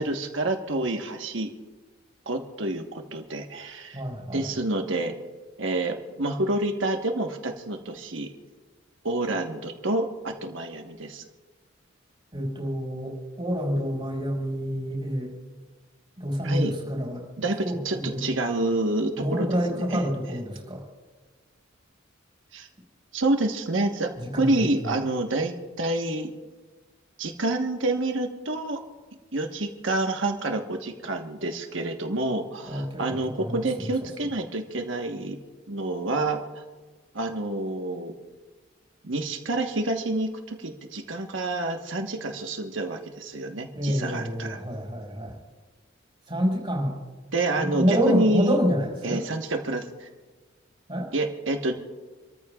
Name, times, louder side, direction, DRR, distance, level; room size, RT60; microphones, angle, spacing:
voice 1, 0.0-1.5 2.3-4.0 4.3-5.1 5.6-8.3 9.0-11.3 16.4-16.7 17.4-17.6 17.8-19.5 19.9-20.1 22.5-22.7 23.1-26.3 27.2-28.8 29.3-35.4 35.7-36.4 37.1-38.1 39.0-44.6 47.3-48.6 49.0-50.1 51.1-51.7, right 2 dB, 65° right, 4 dB, 1.3 m, -28 dB
voice 2, 3.9-4.5 12.3-15.3 16.2-17.2 17.6-18.3 19.2-20.8 24.2-24.9 32.7-33.7 43.7-45.3 46.3-47.0 47.6-49.2 50.9-51.1, equal, 25° right, -2 dB, 5.1 m, -28 dB
28.0 x 14.0 x 2.4 m, 1.4 s
head